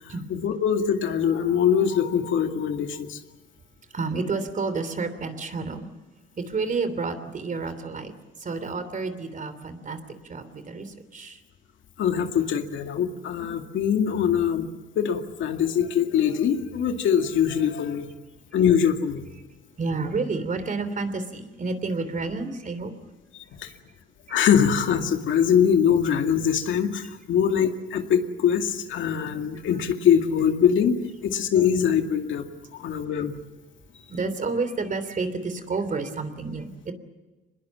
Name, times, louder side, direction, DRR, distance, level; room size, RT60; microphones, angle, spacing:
voice 1, 0.3-3.2 12.0-18.1 18.5-19.2 23.6-23.7 24.3-30.9 31.2-32.5 32.7-33.4, left 8 dB, 75° left, 5 dB, 2.2 m, -23 dB
voice 2, 3.9-5.9 6.4-8.1 8.4-10.0 10.3-11.4 19.8-22.9 34.1-36.9, right 4 dB, 40° right, 11 dB, 3.1 m, -30 dB
25.0 x 21.0 x 7.4 m, 1.2 s
cardioid pair, 90°, 20 cm